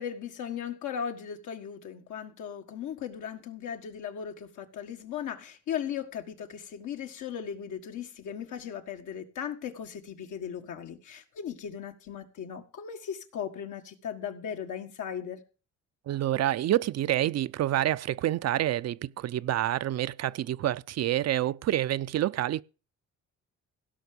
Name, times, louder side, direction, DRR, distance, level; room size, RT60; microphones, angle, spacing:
voice 1, 0.0-15.4, left 8 dB, 80° left, 1.7 m, -37 dB
voice 2, 16.1-22.6, right 13 dB, 60° right, 0.5 m, -28 dB
16.5 x 5.9 x 6.8 m
cardioid pair, 90°, 30 cm